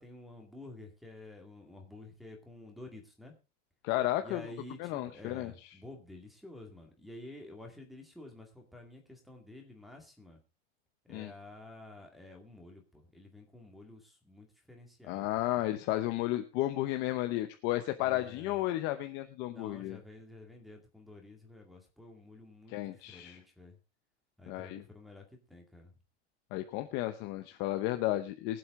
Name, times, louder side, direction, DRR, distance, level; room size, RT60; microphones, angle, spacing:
voice 1, 0.0-3.3 4.2-10.4 11.0-15.3 15.5-15.7 18.0-18.6 19.5-23.8 24.4-25.9, left 2 dB, ahead, 3 dB, 2.2 m, -50 dB
voice 2, 3.8-4.4 4.8-5.5 11.1-11.3 15.1-20.0 22.7-23.4 24.5-24.8 26.5-28.6, left 15 dB, 30° left, 8 dB, 0.7 m, -33 dB
22.0 x 7.9 x 3.6 m, 0.30 s
supercardioid pair, 170°, 37 cm